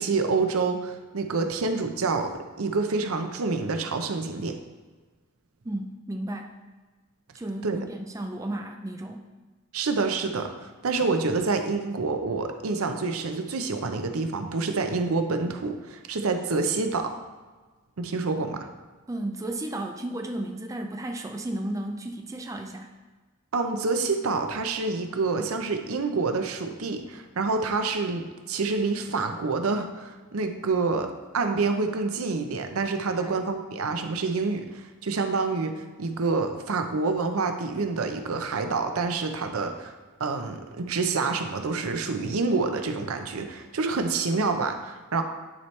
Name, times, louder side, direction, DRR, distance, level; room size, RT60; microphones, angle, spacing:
voice 1, 0.0-4.6 7.6-7.8 9.7-17.1 18.0-18.7 23.5-31.1 31.3-45.2, right 4 dB, 85° right, 6 dB, 0.7 m, -27 dB
voice 2, 5.6-6.6 7.3-9.3 19.1-22.9 33.0-33.3, right 1 dB, 15° right, 4 dB, 0.4 m, -34 dB
10.0 x 4.4 x 3.2 m, 1.3 s
head